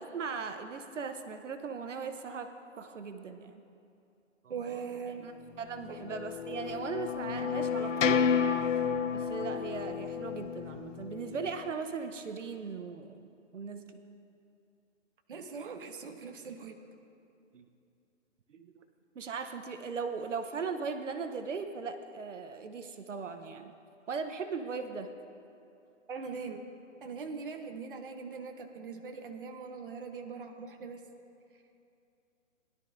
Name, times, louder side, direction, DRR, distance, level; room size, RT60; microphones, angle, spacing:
voice 1, 0.1-2.5 2.8-3.6 4.4-4.8 5.2-5.3 5.6-8.2 9.1-13.3 13.5-14.0 17.5-17.6 18.5-18.7 19.1-23.7 24.1-25.1, right 5 dB, 70° right, 7 dB, 1.0 m, -38 dB
voice 2, 4.5-5.3 5.9-6.0 15.3-16.8 26.1-26.6 27.0-31.0, right 5 dB, 45° right, 3 dB, 1.0 m, -41 dB
sound 1, 5.7-11.7, left 7 dB, 75° left, 0.7 m, -31 dB
21.0 x 12.0 x 2.6 m, 2.6 s
hypercardioid pair, 175°, 38 cm